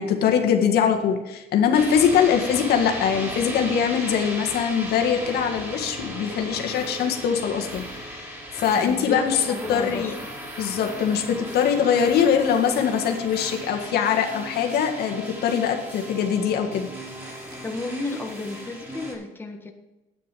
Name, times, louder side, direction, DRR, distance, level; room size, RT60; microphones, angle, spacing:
voice 1, 0.0-9.4 9.7-10.1 10.6-16.9, left 7 dB, 70° left, 3 dB, 1.7 m, -22 dB
sound 1, 1.7-19.1, equal, 15° right, 4.3 m, -36 dB
voice 2, 8.7-10.2 17.6-19.7, left 3 dB, 10° left, 2 dB, 1.5 m, -32 dB
9.5 x 9.2 x 5.4 m, 1.1 s
cardioid pair, 110°, 17 cm